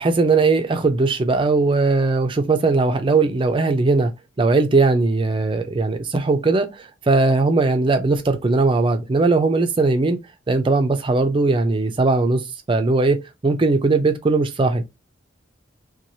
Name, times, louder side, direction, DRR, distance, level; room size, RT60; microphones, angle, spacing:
voice 1, 0.0-4.1 4.4-10.2 10.5-12.4 12.7-14.9, right 3 dB, 25° right, 0.4 m, -19 dB
3.0 x 2.3 x 2.6 m
head